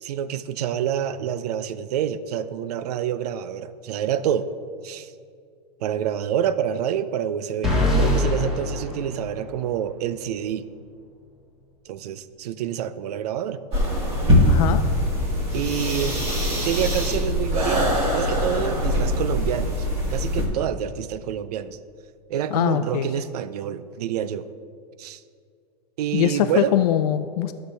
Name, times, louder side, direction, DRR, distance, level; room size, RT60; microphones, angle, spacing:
voice 1, 0.0-4.5 4.8-5.1 5.8-10.6 11.9-13.6 15.5-16.3 16.6-21.8 22.3-24.5 25.0-25.2 26.0-26.7, right 9 dB, 70° right, 14 dB, 0.5 m, -27 dB
sound 1, 7.6-9.8, left 1 dB, ahead, 1.7 m, -23 dB
sound 2, 13.7-20.5, left 1 dB, 30° right, 1.9 m, -22 dB
voice 2, 14.5-14.8 22.5-23.1 26.1-27.5, left 12 dB, 70° left, 10 dB, 0.4 m, -22 dB
11.5 x 6.6 x 3.4 m, 2.3 s
supercardioid pair, 145°, 21 cm